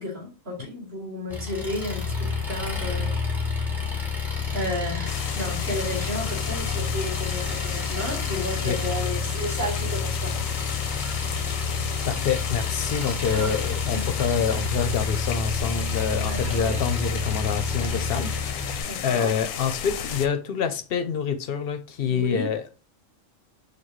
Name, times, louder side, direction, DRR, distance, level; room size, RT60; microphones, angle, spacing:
voice 1, 0.0-3.7 4.5-10.5 13.3-13.5 13.9-14.1 16.2-16.8 18.9-19.3 22.1-22.5, left 1 dB, 45° right, 3.1 m, -33 dB
Engine, 1.3-18.8, left 5 dB, ahead, 0.9 m, -29 dB
sound 1, 5.1-20.3, left 8 dB, 85° left, 1.0 m, -34 dB
voice 2, 11.7-22.7, left 7 dB, 60° left, 0.7 m, -27 dB
6.7 x 2.3 x 3.1 m
omnidirectional pair, 1.4 m